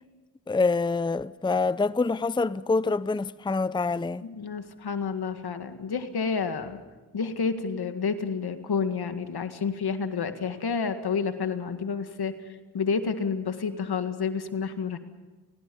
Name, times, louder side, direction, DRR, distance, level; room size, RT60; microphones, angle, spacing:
voice 1, 0.5-4.2, left 3 dB, 10° left, 0.6 m, -26 dB
voice 2, 4.2-6.8 7.1-15.0, left 5 dB, 75° left, 1.9 m, -30 dB
30.0 x 18.5 x 5.4 m
cardioid pair, 45°, 39 cm